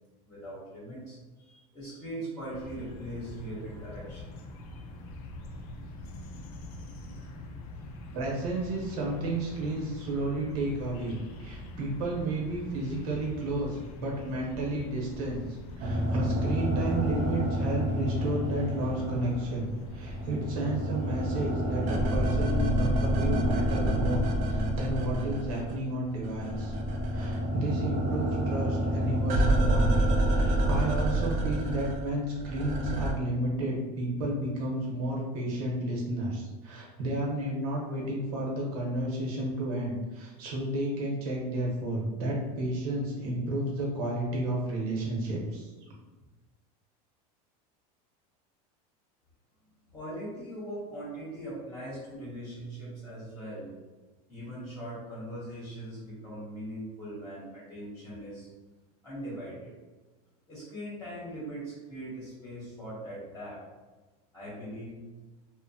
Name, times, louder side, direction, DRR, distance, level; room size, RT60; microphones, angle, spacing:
voice 1, 0.2-4.3 6.1-7.3 49.9-53.7 54.3-58.5 59.0-59.7 60.5-63.6 64.3-65.0, right 1 dB, 20° left, -10 dB, 1.0 m, -41 dB
sound 1, 2.5-22.2, left 1 dB, 70° left, 0.5 m, -44 dB
voice 2, 8.1-26.8 27.1-45.7, right 1 dB, 70° right, -2 dB, 1.0 m, -32 dB
sound 2, 15.8-19.6 19.9-25.9 26.1-33.1, right 1 dB, 40° right, 0.4 m, -28 dB
2.8 x 2.1 x 2.7 m, 1.2 s
supercardioid pair, 145°, 19 cm